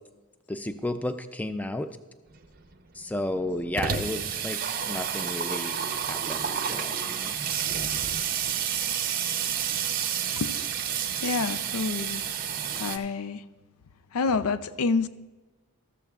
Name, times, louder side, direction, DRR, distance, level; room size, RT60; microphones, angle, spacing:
voice 1, 0.5-1.9 2.9-4.6 4.8-5.8 6.1-7.4, left 1 dB, 5° left, 0.4 m, -33 dB
Water tap faucet / Sink (filling or washing), 2.4-2.5 2.7-2.8 3.1-13.0, right 8 dB, 40° right, 0.6 m, -30 dB
voice 2, 11.2-12.3 12.8-13.5 14.1-15.1, left 4 dB, 85° left, 0.5 m, -28 dB
14.0 x 13.5 x 2.4 m
head